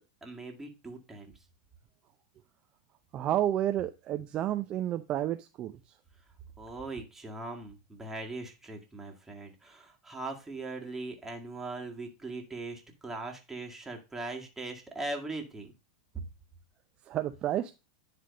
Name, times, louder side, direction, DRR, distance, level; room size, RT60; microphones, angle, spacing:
voice 1, 0.2-1.3 6.6-15.7 16.1-16.2, right 2 dB, 10° right, 1.9 m, -40 dB
voice 2, 3.1-5.7 17.1-17.7, right 12 dB, 35° right, 0.5 m, -30 dB
10.5 x 3.5 x 5.1 m
hypercardioid pair, 115°, 3 cm